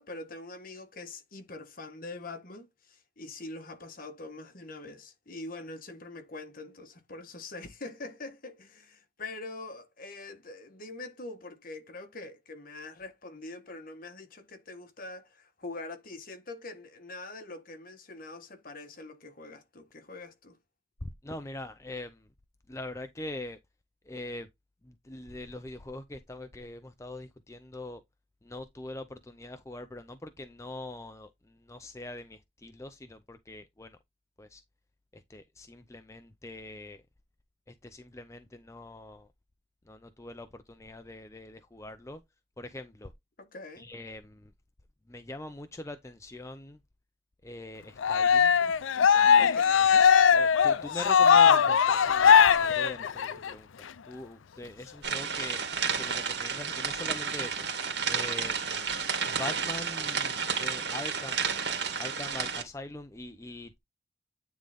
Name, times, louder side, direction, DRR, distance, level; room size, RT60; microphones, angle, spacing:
voice 1, 0.0-20.6 43.4-43.9 49.4-49.9, left 2 dB, 45° left, 1.3 m, -44 dB
voice 2, 21.0-22.3 22.7-23.6 24.1-24.5 24.8-28.0 28.4-34.0 34.4-34.6 35.1-37.0 37.8-39.3 39.9-42.2 42.6-43.1 43.8-44.5 45.1-46.8 47.4-48.5 49.2-49.5 50.3-55.6 56.0-57.7 58.1-58.9 59.3-61.4 62.0-63.8, left 2 dB, 15° left, 0.5 m, -43 dB
Cheering, 48.0-53.5, left 7 dB, 90° left, 0.5 m, -20 dB
sound 1, 55.0-62.6, right 6 dB, 60° right, 2.2 m, -31 dB
9.4 x 3.7 x 3.4 m
head